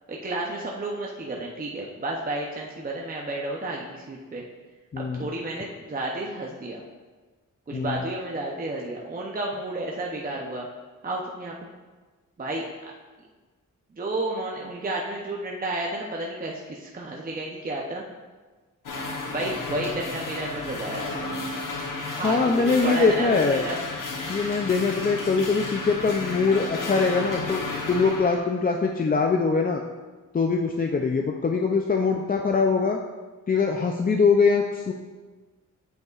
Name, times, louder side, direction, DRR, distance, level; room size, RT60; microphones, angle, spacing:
voice 1, 0.1-4.4 5.0-6.8 7.7-10.7 11.0-11.5 12.4-12.7 13.9-18.0 19.3-21.1 22.2-23.8, right 2 dB, 30° right, -2 dB, 0.6 m, -31 dB
voice 2, 4.9-5.2 7.7-8.0 22.2-23.6 24.3-27.6 27.9-29.8 30.3-33.0 33.5-34.9, left 4 dB, 30° left, 2 dB, 0.4 m, -22 dB
sound 1, 18.9-28.4, left 3 dB, 90° left, 1.0 m, -33 dB
8.0 x 7.0 x 2.4 m, 1.3 s
wide cardioid pair, 130°, 31 cm